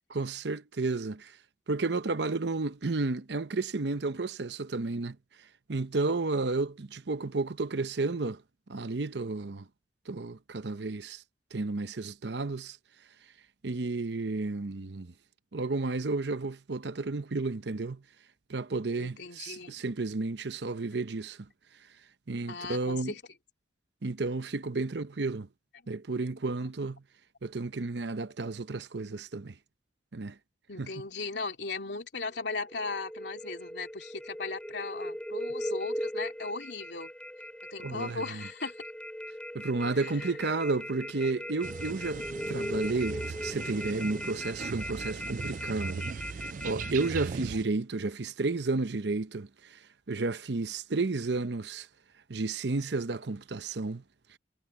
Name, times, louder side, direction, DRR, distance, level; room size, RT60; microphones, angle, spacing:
voice 1, 0.1-1.4 1.7-5.2 5.7-8.4 8.7-9.7 10.1-11.2 11.5-12.8 13.6-15.1 15.5-18.0 18.5-21.5 22.3-23.1 24.0-25.5 25.9-27.0 27.4-29.5 30.1-30.4 30.8-30.9 37.8-38.4 39.5-49.8 50.1-51.9 52.3-54.0, right 3 dB, 70° right, 0.8 m, -32 dB
voice 2, 19.0-19.8 22.5-23.2 30.7-37.1 37.7-38.8 40.2-40.3, left 3 dB, 75° left, 2.6 m, -37 dB
sound 1, 32.3-47.1, equal, 5° left, 3.5 m, -39 dB
sound 2, 41.6-47.6, right 5 dB, 45° right, 0.3 m, -39 dB
head